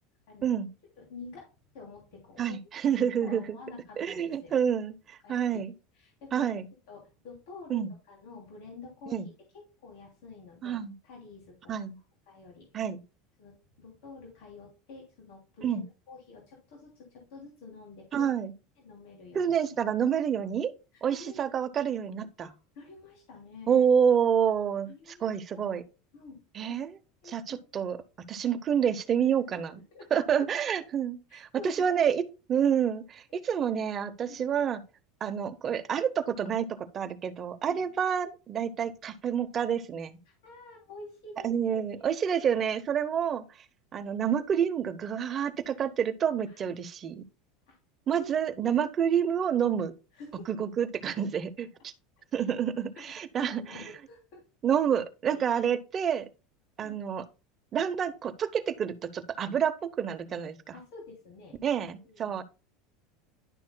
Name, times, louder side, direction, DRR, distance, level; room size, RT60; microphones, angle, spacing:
voice 1, 1.0-1.5 1.7-2.4 3.2-4.5 5.2-5.6 5.9-6.6 6.9-9.2 9.8-11.7 12.3-12.7 13.4-18.3 18.8-19.5 20.9-21.4 22.4-23.9 24.8-25.3 25.5-25.8 26.1-26.4 26.7-26.8 27.2-27.6 28.5-28.6 29.4-29.6 29.9-30.1 31.3-31.9 34.2-34.4 37.7-38.0 40.4-42.1 46.5-46.8 47.7-47.8 48.0-48.3 48.6-48.9 50.1-50.7 53.0-53.1 53.4-54.4 56.8-57.0 60.7-61.6 61.9-62.4, left 3 dB, 70° left, 2.8 m, -48 dB
voice 2, 2.4-3.6 4.0-5.7 6.3-6.7 7.7-7.9 9.1-9.3 10.6-10.9 11.7-12.0 12.7-13.0 15.6-15.8 18.1-18.5 19.3-20.7 21.0-22.5 23.7-24.9 25.2-25.8 26.5-27.0 27.2-28.0 28.3-29.8 30.1-32.2 32.5-34.8 35.2-40.2 41.4-43.4 43.9-47.2 48.1-49.9 50.5-51.9 52.3-53.8 54.6-56.3 56.8-57.2 57.7-60.6 61.6-62.4, right 8 dB, 30° right, 0.8 m, -28 dB
10.5 x 6.2 x 2.2 m
supercardioid pair, 130°, 0 cm